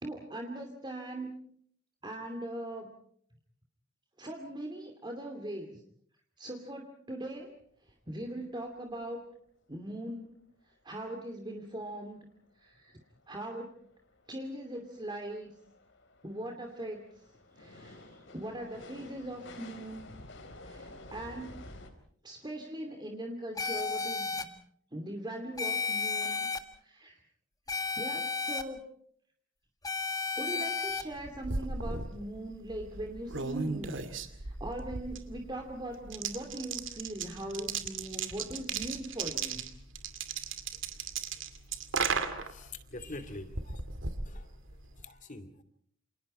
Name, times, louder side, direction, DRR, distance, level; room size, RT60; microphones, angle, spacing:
voice 1, 0.0-1.4 2.0-2.9 4.2-5.8 6.4-7.6 8.1-9.2 9.7-10.3 10.8-12.3 12.6-13.0 13.3-13.7 14.3-15.5 16.2-17.0 17.6-20.1 20.6-21.6 22.2-24.5 24.9-26.5 26.8-27.2 27.9-28.8 30.4-34.0 34.3-39.6, right 1 dB, 25° right, 3 dB, 2.6 m, -40 dB
sound 1, 7.6-7.7 7.9-8.0 8.3-8.5 8.9-9.0 12.1-12.2 12.7-21.9, left 2 dB, 65° left, 4.2 m, -51 dB
sound 2, 23.6-24.4 25.6-26.6 27.7-28.6 29.8-31.0, left 4 dB, 20° left, 1.8 m, -33 dB
sound 3, 31.0-45.1, right 5 dB, 70° right, 2.5 m, -37 dB
voice 2, 42.5-43.8 44.2-44.5 45.0-45.5, left 2 dB, 40° left, 11 dB, 2.7 m, -44 dB
29.0 x 28.0 x 4.4 m, 0.63 s
head